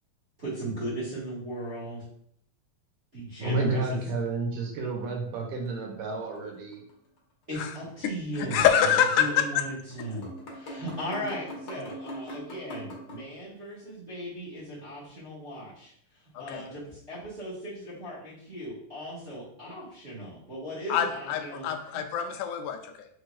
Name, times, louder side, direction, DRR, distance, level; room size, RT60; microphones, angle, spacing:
voice 1, 0.4-2.0 3.1-3.8 7.5-8.9 9.2-21.7, right 1 dB, 35° right, -10 dB, 1.3 m, -37 dB
voice 2, 3.4-6.8, right 3 dB, 80° right, 1 dB, 2.4 m, -30 dB
sound 1, 5.7-6.9 7.2-7.3 8.7-8.9 9.5-9.6 9.9-13.2, equal, 65° left, 1.1 m, -42 dB
voice 3, 8.4-9.5 16.4-16.6 20.9-23.1, left 9 dB, 80° left, 6 dB, 1.9 m, -25 dB
4.7 x 4.7 x 2.3 m, 0.68 s
omnidirectional pair, 3.8 m